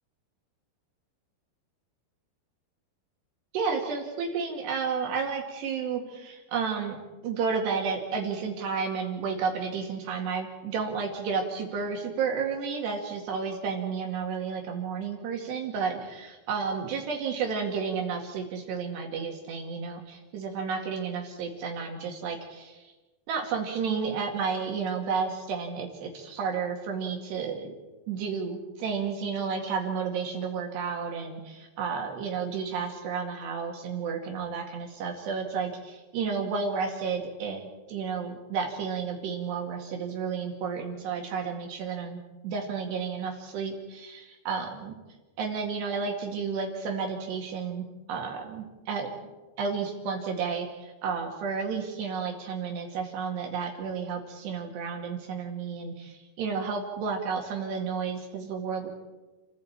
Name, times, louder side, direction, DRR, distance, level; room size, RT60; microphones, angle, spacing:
voice 1, 3.5-22.9 23.3-27.8 28.1-44.9 45.4-49.1 49.6-58.9, right 5 dB, 70° right, 2 dB, 4.3 m, -32 dB
29.0 x 16.0 x 8.9 m, 1.2 s
omnidirectional pair, 5.2 m